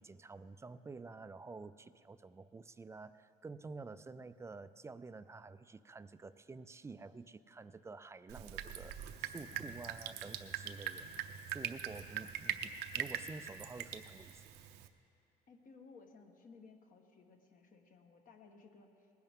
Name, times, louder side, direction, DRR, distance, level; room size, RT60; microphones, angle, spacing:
voice 1, 0.0-11.1 11.5-14.5, right 3 dB, 15° right, 13 dB, 0.3 m, -50 dB
Drip, 8.3-14.9, right 10 dB, 80° right, 0.6 m, -42 dB
voice 2, 9.5-10.0 12.2-12.3 15.5-19.1, left 4 dB, 55° left, 4 dB, 1.3 m, -59 dB
19.5 x 10.5 x 3.6 m, 2.6 s
cardioid pair, 110°, 17 cm